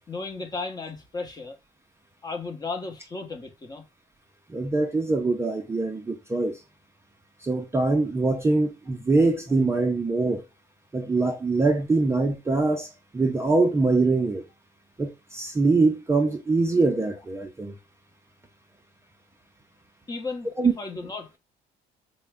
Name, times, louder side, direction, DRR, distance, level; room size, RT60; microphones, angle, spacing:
voice 1, 0.1-1.6 2.2-3.8 20.1-21.4, left 3 dB, 25° left, 0.8 m, -35 dB
voice 2, 4.5-6.6 7.4-10.4 10.9-14.4 15.0-17.7 20.6-20.7, right 3 dB, 15° right, 0.4 m, -23 dB
3.8 x 2.1 x 3.3 m
cardioid pair, 110°, 17 cm